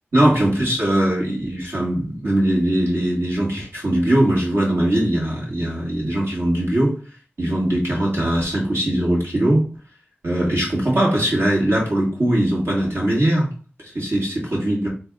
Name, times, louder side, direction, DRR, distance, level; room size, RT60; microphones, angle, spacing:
voice 1, 0.1-7.0 7.4-9.6 10.2-13.5 13.9-14.9, right 1 dB, 75° right, -5 dB, 2.2 m, -20 dB
4.0 x 2.8 x 3.7 m, 0.39 s
wide cardioid pair, 65°, 4 cm